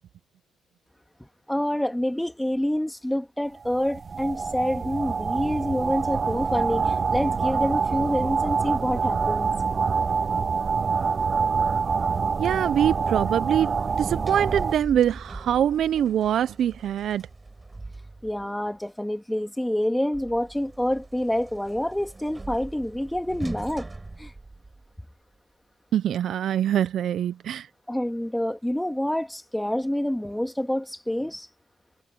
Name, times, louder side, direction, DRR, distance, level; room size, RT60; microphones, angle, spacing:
voice 1, 1.5-9.5 18.2-23.9 24.2-24.3 27.9-31.5, left 1 dB, 5° left, 2.6 m, -27 dB
sound 1, 3.6-14.7, right 5 dB, 45° right, 0.3 m, -26 dB
voice 2, 12.4-17.3 25.9-27.7, right 10 dB, 70° right, 0.9 m, -24 dB
Sliding door, 13.7-18.5 20.1-25.1, right 2 dB, 25° right, 5.0 m, -41 dB
hypercardioid pair, 50°, 0 cm